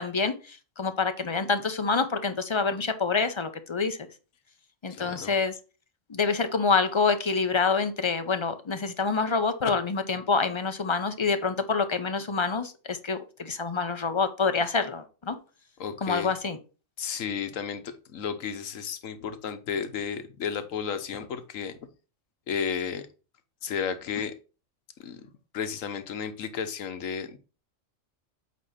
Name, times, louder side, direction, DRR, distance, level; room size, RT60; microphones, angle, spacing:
voice 1, 0.0-4.0 4.8-5.5 6.1-15.4 16.0-16.6, left 4 dB, 35° left, 9 dB, 0.5 m, -27 dB
voice 2, 4.9-5.3 15.8-16.3 17.0-21.7 22.5-23.0 23.6-24.3 25.0-25.3 25.5-27.4, left 7 dB, 80° left, 10 dB, 1.3 m, -33 dB
8.3 x 2.9 x 5.7 m, 0.34 s
omnidirectional pair, 1.3 m